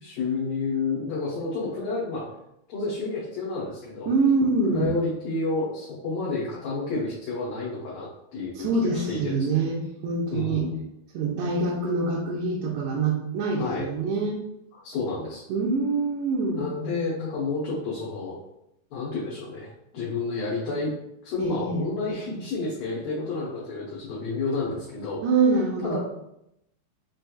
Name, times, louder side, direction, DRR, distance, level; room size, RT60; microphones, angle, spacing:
voice 1, 0.0-2.2 2.7-4.1 4.7-9.6 10.3-10.8 13.6-13.9 14.8-15.4 16.6-18.4 18.9-19.7 19.9-20.9 21.2-25.2 25.8-26.0, left 3 dB, 70° left, -7 dB, 2.1 m, -30 dB
voice 2, 4.0-5.0 8.6-10.7 11.1-14.4 15.5-16.6 21.4-21.8 25.2-26.0, right 3 dB, 80° right, -5 dB, 2.6 m, -25 dB
6.9 x 3.2 x 2.3 m, 0.82 s
omnidirectional pair, 5.1 m